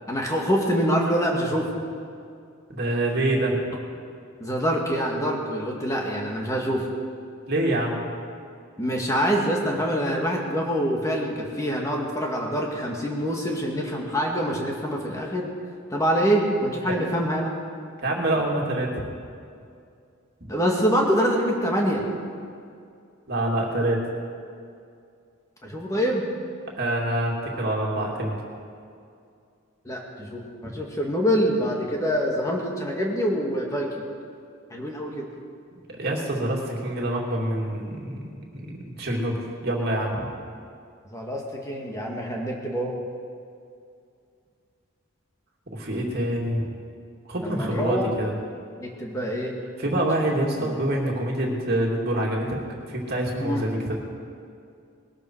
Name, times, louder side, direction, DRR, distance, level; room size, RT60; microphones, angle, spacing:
voice 1, 0.1-1.7 4.4-6.9 8.8-15.5 15.9-17.5 20.5-22.1 25.6-26.3 29.9-33.9 34.7-35.3 41.1-43.0 47.4-48.1 48.8-49.6 50.6-50.8 53.4-53.6, equal, 15° left, -1 dB, 2.0 m, -25 dB
voice 2, 2.7-3.6 7.5-8.0 18.0-19.0 23.3-24.0 26.8-28.4 30.6-30.8 35.9-40.3 45.7-46.7 47.3-48.3 49.8-52.6 52.9-54.0, right 1 dB, 50° right, -2 dB, 2.6 m, -26 dB
20.0 x 12.5 x 4.7 m, 2.4 s
head